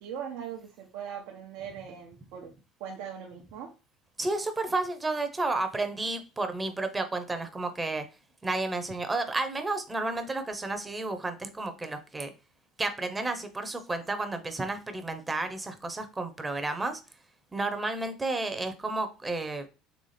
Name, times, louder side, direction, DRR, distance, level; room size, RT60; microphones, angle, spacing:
voice 1, 0.0-2.5 2.8-3.7, right 8 dB, 70° right, -1 dB, 0.8 m, -40 dB
voice 2, 4.2-8.0 8.4-12.3 12.8-17.0 17.5-19.7, right 2 dB, 20° right, 8 dB, 0.9 m, -31 dB
4.2 x 3.3 x 3.3 m, 0.31 s
hypercardioid pair, 80°, 0 cm